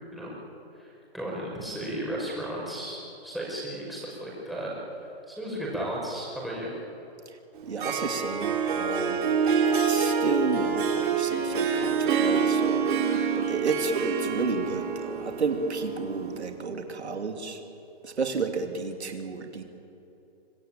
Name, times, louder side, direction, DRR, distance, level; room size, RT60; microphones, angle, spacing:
voice 1, 0.8-4.7 5.3-6.7, right 1 dB, ahead, -5 dB, 5.8 m, -34 dB
Harp, 7.6-16.5, right 6 dB, 50° right, 3.5 m, -27 dB
voice 2, 7.7-9.3 9.9-17.6 18.0-19.6, right 4 dB, 85° right, 5 dB, 2.9 m, -32 dB
25.0 x 20.5 x 9.0 m, 3.0 s
hypercardioid pair, 145°, 32 cm